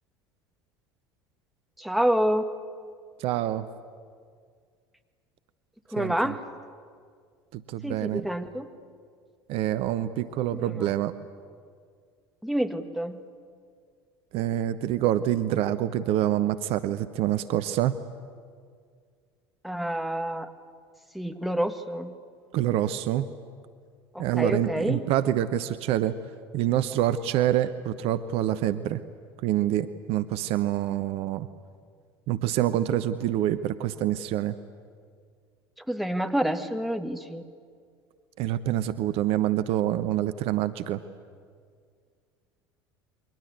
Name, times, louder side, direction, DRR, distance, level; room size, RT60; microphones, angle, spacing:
voice 1, 1.8-2.5 5.9-6.4 7.8-8.7 10.5-10.8 12.4-13.2 19.6-20.5 21.1-22.1 24.1-25.0 35.9-37.4, right 1 dB, ahead, 6 dB, 1.8 m, -28 dB
voice 2, 3.2-3.7 6.0-6.3 7.5-8.3 9.5-11.1 14.3-17.9 22.5-23.3 24.2-26.1 26.5-29.0 29.4-31.5 32.3-34.5 38.4-41.0, right 12 dB, 50° right, 13 dB, 0.9 m, -26 dB
28.5 x 23.5 x 8.3 m, 2.1 s
figure-of-eight pair, 70°, 13 cm